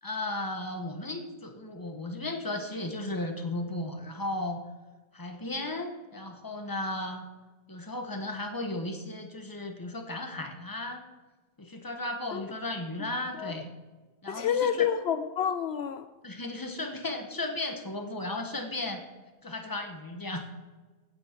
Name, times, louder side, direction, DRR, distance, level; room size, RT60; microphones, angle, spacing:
voice 1, 0.0-4.6 5.1-7.2 7.7-11.1 11.6-13.7 14.2-14.9 16.2-19.0 19.4-20.5, left 2 dB, 15° left, 5 dB, 1.2 m, -35 dB
voice 2, 14.3-16.1, left 8 dB, 75° left, 11 dB, 0.6 m, -28 dB
16.0 x 9.0 x 4.5 m, 1.3 s
omnidirectional pair, 1.7 m